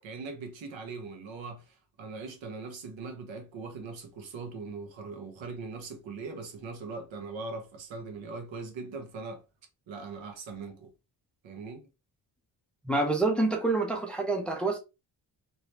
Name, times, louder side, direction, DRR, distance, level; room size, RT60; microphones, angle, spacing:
voice 1, 0.0-9.4 9.9-10.9 11.4-11.9, right 4 dB, 85° right, 1.1 m, -40 dB
voice 2, 12.8-14.8, right 2 dB, ahead, 0.5 m, -27 dB
3.2 x 2.9 x 2.8 m
wide cardioid pair, 135°, 45 cm